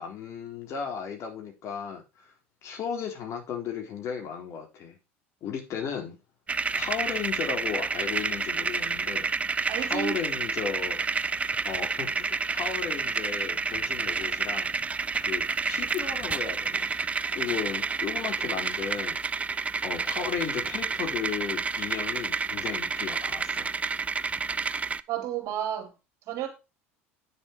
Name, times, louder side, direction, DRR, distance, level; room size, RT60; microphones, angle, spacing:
voice 1, 0.0-2.3 2.6-5.0 5.4-6.2 6.7-9.3 9.8-11.0 11.6-14.7 15.3-16.8 17.3-19.2 19.8-23.7, left 7 dB, 45° left, 4.0 m, -35 dB
sound 1, 6.5-25.0, right 4 dB, 20° right, 0.6 m, -29 dB
voice 2, 9.7-10.2 25.1-25.9 26.3-26.5, right 10 dB, 50° right, 3.4 m, -31 dB
9.4 x 6.9 x 4.6 m
hypercardioid pair, 70°, 7 cm